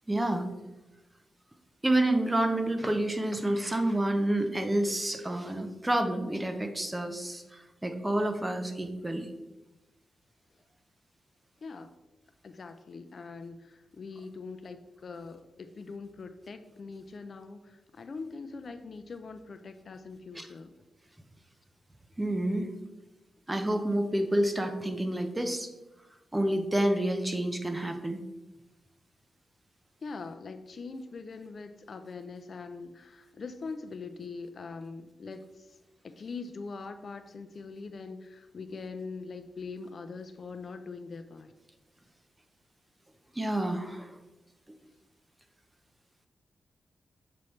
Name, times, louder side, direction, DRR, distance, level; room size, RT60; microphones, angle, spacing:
voice 1, 0.1-0.5 1.8-9.3 20.3-20.5 22.2-22.7 23.5-25.7 26.3-28.2 43.3-44.1, right 1 dB, 15° right, 6 dB, 0.7 m, -29 dB
voice 2, 11.6-11.9 12.4-20.7 30.0-35.7 36.0-41.5, left 4 dB, 50° left, 8 dB, 0.4 m, -42 dB
7.0 x 4.6 x 3.2 m, 1.1 s
cardioid pair, 100°, 0 cm